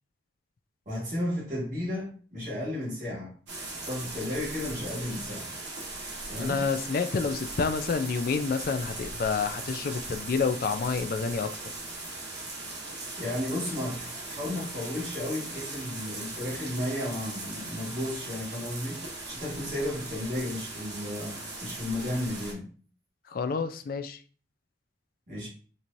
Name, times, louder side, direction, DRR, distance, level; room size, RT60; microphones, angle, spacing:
voice 1, 0.8-3.3 3.9-5.5 6.3-6.6 13.2-19.0 19.3-22.7 25.3-25.5, left 1 dB, 40° right, 1.6 m, -33 dB
sound 1, 3.5-22.5, right 2 dB, 70° right, 1.2 m, -39 dB
voice 2, 6.3-11.7 23.3-24.2, left 5 dB, 50° left, 0.3 m, -29 dB
4.5 x 2.7 x 2.6 m
head